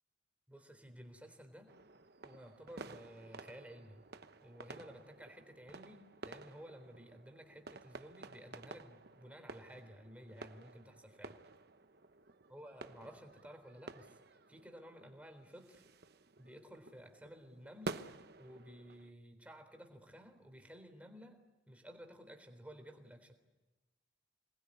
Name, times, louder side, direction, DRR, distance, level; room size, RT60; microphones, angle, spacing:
voice 1, 0.5-1.7 2.2-4.0 4.4-11.4 12.5-15.8 16.4-18.0 18.4-21.4 21.7-23.3, equal, 5° right, 5 dB, 3.6 m, -54 dB
sound 1, 1.7-19.1, right 3 dB, 55° right, 1.0 m, -52 dB
27.5 x 20.5 x 9.8 m, 1.1 s
head